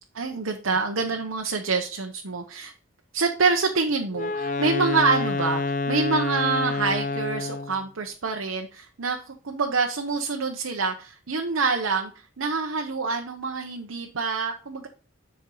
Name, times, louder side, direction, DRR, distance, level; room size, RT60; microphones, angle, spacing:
voice 1, 0.1-2.7 3.1-12.1 12.4-14.9, right 4 dB, 90° right, 3 dB, 0.9 m, -26 dB
Wind instrument woodwind instrument, 4.1-7.8, left 3 dB, 40° left, 0.6 m, -28 dB
10.5 x 4.6 x 3.9 m, 0.38 s
head